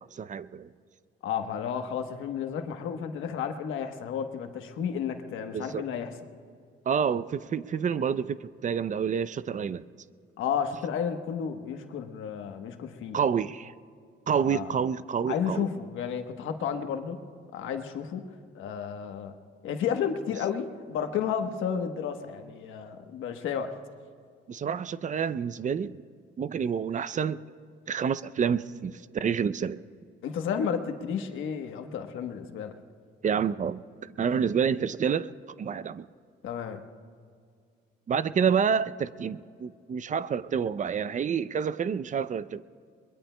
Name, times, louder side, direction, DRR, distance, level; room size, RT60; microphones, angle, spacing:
voice 1, 0.1-0.7 5.5-5.8 6.9-9.8 13.1-13.7 14.3-15.7 24.5-26.0 26.4-27.4 27.9-29.8 33.2-35.3 35.6-36.1 38.1-42.6, right 7 dB, 40° right, 0.5 m, -28 dB
voice 2, 1.2-6.1 10.4-13.2 14.4-14.8 15.3-17.2 17.5-18.3 18.5-19.3 19.6-23.7 30.2-32.7 36.4-36.8, left 7 dB, 85° left, 1.1 m, -32 dB
22.5 x 22.0 x 2.2 m
cardioid pair, 90°, 20 cm